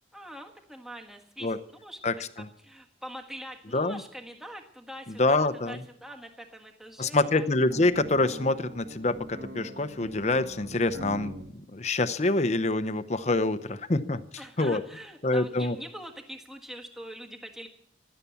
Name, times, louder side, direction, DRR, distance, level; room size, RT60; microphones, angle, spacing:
voice 1, 0.1-2.0 2.6-7.5 14.4-17.7, equal, ahead, 2 dB, 1.5 m, -43 dB
voice 2, 5.2-5.8 7.0-14.2 14.6-14.8 15.2-15.8, left 2 dB, 40° left, 12 dB, 0.8 m, -26 dB
sound 1, 7.7-11.5, equal, 70° right, 2.1 m, -42 dB
16.5 x 11.5 x 7.0 m, 0.69 s
head